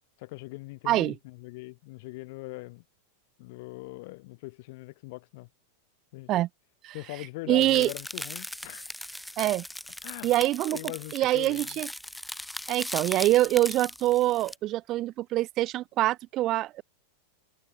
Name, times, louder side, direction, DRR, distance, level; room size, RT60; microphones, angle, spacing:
voice 1, 0.2-2.8 3.4-5.5 6.1-6.3 6.9-8.9 10.0-10.3 10.7-11.7, left 24 dB, 50° left, 0.8 m, -41 dB
voice 2, 7.5-7.9 9.4-9.6 10.2-10.8 11.1-11.9 12.7-16.8, right 15 dB, 35° right, 0.5 m, -25 dB
sound 1, 7.6-14.6, left 1 dB, ahead, 1.8 m, -39 dB
figure-of-eight pair, 90°, 0 cm